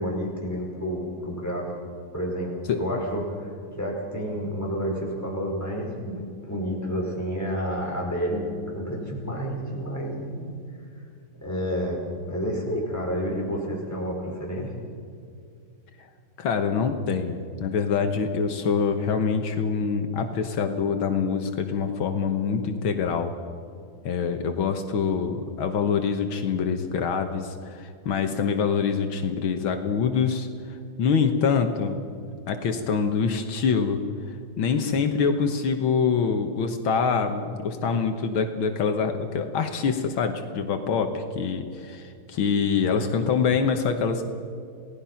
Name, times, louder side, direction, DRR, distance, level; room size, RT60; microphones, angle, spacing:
voice 1, 0.0-1.7 2.1-10.5 11.4-12.0 12.3-14.7, equal, 5° left, -2 dB, 5.4 m, -30 dB
voice 2, 16.4-23.3 24.0-32.1 32.5-34.0 34.6-44.3, left 6 dB, 80° left, 6 dB, 2.0 m, -25 dB
28.5 x 18.5 x 5.8 m, 2.3 s
omnidirectional pair, 2.2 m